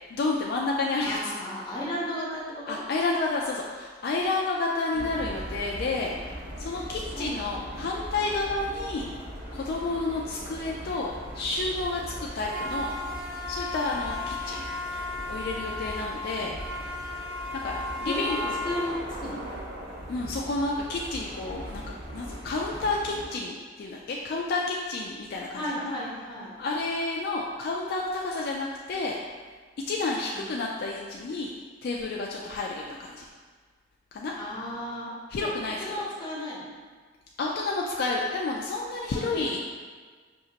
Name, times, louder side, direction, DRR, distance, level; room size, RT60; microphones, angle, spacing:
voice 1, 0.0-1.2 2.7-6.1 6.6-9.1 9.5-12.9 13.5-14.7 15.3-16.5 17.6-18.6 20.1-21.8 22.1-25.9 26.5-29.2 29.9-31.5 31.8-33.2 34.1-34.3 35.3-35.8 37.4-39.6, left 3 dB, 55° left, -1 dB, 0.3 m, -30 dB
voice 2, 1.0-2.8 4.9-5.5 7.1-7.7 18.0-18.9 19.2-19.5 25.5-26.5 30.3-30.6 34.4-35.1 35.4-35.5 35.8-36.7 39.1-39.6, left 1 dB, 25° left, -6 dB, 0.9 m, -35 dB
sound 1, 4.9-23.2, left 1 dB, 55° right, 0.8 m, -37 dB
5.4 x 2.8 x 2.8 m, 1.5 s
head